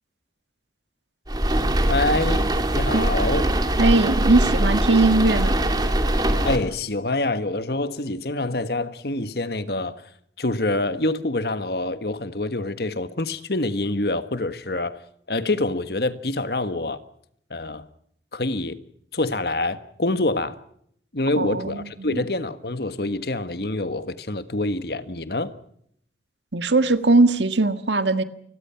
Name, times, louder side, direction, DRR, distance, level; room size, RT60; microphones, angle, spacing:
sound 1, 1.3-6.6, right 1 dB, 20° right, 2.4 m, -22 dB
voice 1, 1.9-3.5 6.4-10.0 10.4-15.0 15.3-17.0 17.5-17.8 18.3-18.8 19.1-20.6 21.1-25.5, left 2 dB, 65° left, 1.5 m, -26 dB
voice 2, 3.8-5.6 21.4-21.8 22.1-22.2 26.5-28.2, right 2 dB, 85° right, 1.7 m, -19 dB
29.0 x 21.5 x 5.8 m
head